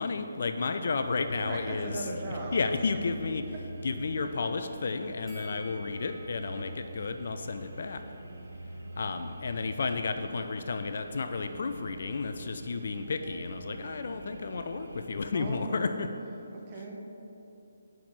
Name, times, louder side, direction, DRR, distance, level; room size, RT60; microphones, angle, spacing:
voice 1, 0.0-3.4 3.8-8.0 9.0-16.1, left 4 dB, 55° left, 8 dB, 0.4 m, -32 dB
sound 1, 0.9-15.3, right 1 dB, 70° right, 0.6 m, -44 dB
voice 2, 1.4-2.7 15.3-16.1 16.5-17.0, right 2 dB, 25° right, -2 dB, 0.9 m, -38 dB
Bell, 5.3-8.5 8.8-8.9, equal, ahead, 0.8 m, -54 dB
5.2 x 4.7 x 6.1 m, 2.8 s
figure-of-eight pair, 145°, 0 cm